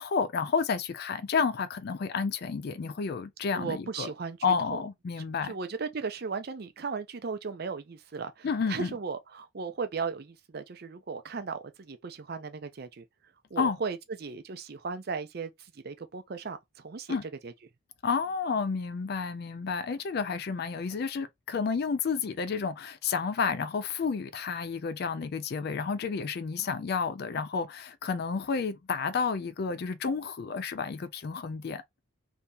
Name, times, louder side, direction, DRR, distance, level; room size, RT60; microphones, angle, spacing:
voice 1, 0.0-4.1 4.4-5.5 8.4-8.9 13.6-13.8 17.1-17.2 18.0-31.8, left 5 dB, 50° left, 0.4 m, -30 dB
voice 2, 3.5-4.8 5.4-13.0 13.5-17.5, right 5 dB, 50° right, 0.5 m, -36 dB
2.8 x 2.7 x 3.4 m
head